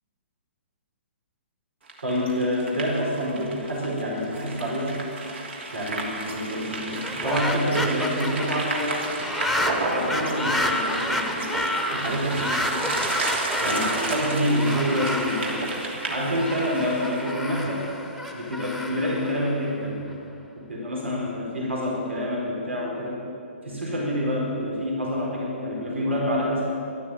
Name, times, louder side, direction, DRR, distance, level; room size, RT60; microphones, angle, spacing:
sound 1, 1.9-17.3, right 3 dB, 65° right, 3.1 m, -32 dB
voice 1, 2.0-5.0 5.7-9.2 9.9-11.5 11.9-12.8 13.6-15.5 16.1-17.9 18.3-20.0 20.7-23.2 23.6-26.6, equal, 85° right, -3 dB, 4.3 m, -27 dB
sound 2, 7.0-20.1, left 1 dB, 5° right, 1.2 m, -30 dB
12.5 x 12.0 x 8.8 m, 2.6 s
hypercardioid pair, 130°, 7 cm